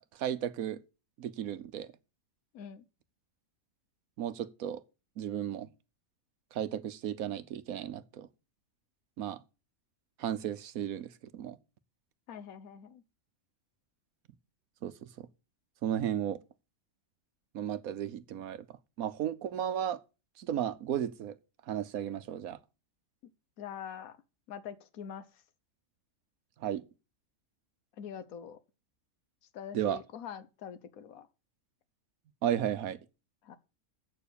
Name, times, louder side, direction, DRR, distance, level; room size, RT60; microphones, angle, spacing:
voice 1, 0.2-0.8 1.2-1.9 4.2-4.8 5.2-5.7 6.5-8.3 9.2-9.4 10.2-11.6 14.8-15.3 15.8-16.4 17.5-18.7 19.0-20.0 20.4-21.3 21.7-22.6 26.6-26.8 29.7-30.0 32.4-33.0, right 10 dB, 75° right, 1.2 m, -34 dB
voice 2, 2.5-2.8 12.3-13.0 23.6-24.2 24.5-25.3 28.0-28.6 29.5-31.3 33.4-33.6, left 8 dB, 75° left, 1.4 m, -44 dB
8.1 x 7.0 x 6.9 m
omnidirectional pair, 1.5 m